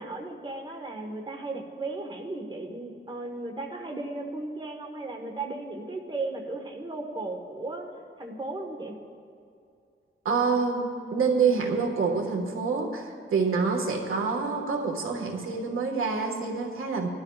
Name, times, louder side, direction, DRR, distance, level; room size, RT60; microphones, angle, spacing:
voice 1, 0.0-7.9 8.2-8.9, right 2 dB, 20° right, 1 dB, 1.4 m, -35 dB
voice 2, 10.2-17.1, right 5 dB, 85° right, 2 dB, 1.6 m, -27 dB
21.0 x 12.5 x 2.4 m, 2.4 s
wide cardioid pair, 120°, 21 cm